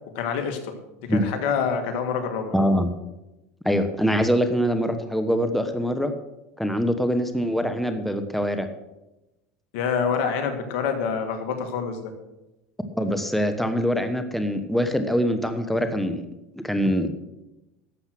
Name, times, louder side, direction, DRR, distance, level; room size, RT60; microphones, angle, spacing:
voice 1, 0.1-0.7 1.0-2.6 9.7-12.1, left 6 dB, 65° left, 6 dB, 2.1 m, -26 dB
voice 2, 2.5-2.9 3.6-6.1 6.6-8.7 12.9-16.2 16.6-17.1, equal, ahead, 8 dB, 1.1 m, -23 dB
12.0 x 7.8 x 6.2 m, 0.98 s
hypercardioid pair, 100°, 7 cm